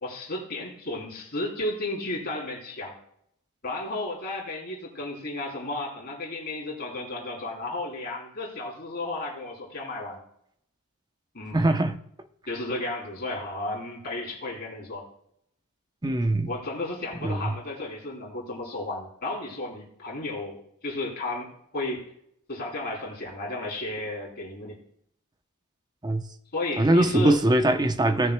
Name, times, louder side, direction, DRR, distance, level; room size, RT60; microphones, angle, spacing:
voice 1, 0.0-2.9 3.6-10.2 11.3-11.6 12.5-15.1 16.4-22.1 22.5-24.8 26.5-27.4, left 2 dB, 45° left, -2 dB, 3.3 m, -33 dB
voice 2, 11.5-12.0 16.0-16.5 17.2-17.5 26.0-26.2 26.8-28.3, right 1 dB, 20° right, 8 dB, 0.7 m, -22 dB
18.0 x 6.6 x 2.2 m, 0.71 s
head